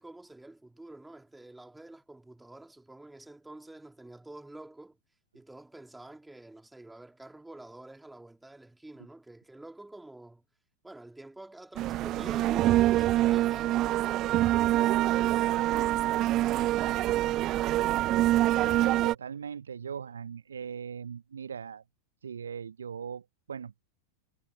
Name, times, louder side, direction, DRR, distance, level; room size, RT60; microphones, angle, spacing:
voice 1, 0.0-5.0 5.3-10.5 10.8-17.3, right 2 dB, 5° right, 3.5 m, -48 dB
sound 1, 11.8-19.2, right 15 dB, 35° right, 0.5 m, -25 dB
voice 2, 18.7-21.8 22.2-23.9, right 7 dB, 70° right, 0.8 m, -40 dB
figure-of-eight pair, 90°, 0 cm